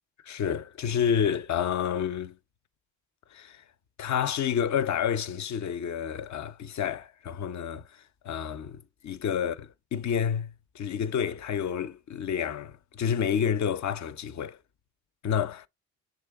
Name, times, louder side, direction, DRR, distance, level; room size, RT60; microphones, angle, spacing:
voice 1, 0.3-2.4 3.3-3.6 4.0-7.8 8.2-14.6 15.2-15.7, left 8 dB, 55° left, 0.7 m, -29 dB
6.8 x 3.2 x 4.6 m
supercardioid pair, 55°, 35 cm